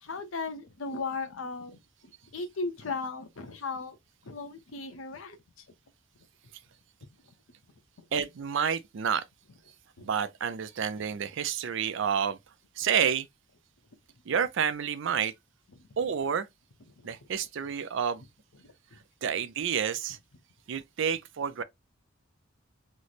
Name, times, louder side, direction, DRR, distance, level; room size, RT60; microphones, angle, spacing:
voice 1, 0.0-1.8 2.3-4.0 4.2-5.4 10.0-10.1 17.0-17.1 18.6-18.7, left 4 dB, 75° left, 0.7 m, -36 dB
voice 2, 8.1-9.2 10.0-12.4 12.8-13.3 14.3-15.3 16.0-16.5 17.0-18.2 19.2-20.2 20.7-21.6, right 7 dB, 65° right, 0.4 m, -29 dB
3.1 x 2.0 x 3.9 m
head